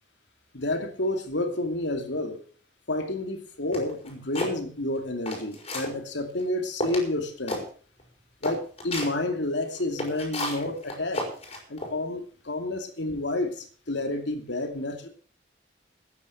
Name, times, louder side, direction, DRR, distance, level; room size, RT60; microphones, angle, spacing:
voice 1, 0.5-2.4 2.9-7.6 8.4-11.3 11.7-15.1, left 2 dB, 90° left, 5 dB, 2.5 m, -30 dB
sound 1, 3.7-4.5 5.0-5.9 6.4-6.5 6.8-7.1 7.5-7.6 8.0-8.1 8.4-9.1 9.7-11.9, left 1 dB, 35° left, 5.0 m, -32 dB
14.0 x 9.7 x 6.2 m, 0.43 s
head